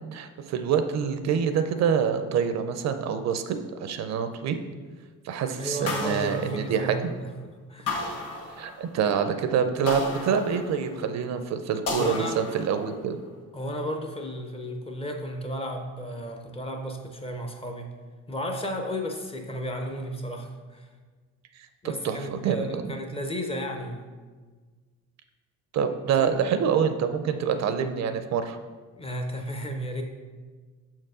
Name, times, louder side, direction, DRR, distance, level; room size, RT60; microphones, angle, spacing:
voice 1, 0.1-4.6 5.2-7.0 8.6-13.2 22.0-23.0 25.7-28.6, right 7 dB, 60° right, 9 dB, 0.5 m, -26 dB
voice 2, 5.6-8.0 12.0-12.4 13.5-17.9 18.3-20.9 21.8-24.1 26.2-26.3 29.0-30.0, equal, 20° left, 4 dB, 0.5 m, -33 dB
sound 1, 5.9-7.2 7.9-9.0 9.9-11.1 11.9-13.0, left 3 dB, 50° left, 1.5 m, -34 dB
6.0 x 4.5 x 4.8 m, 1.4 s
cardioid pair, 150°, 31 cm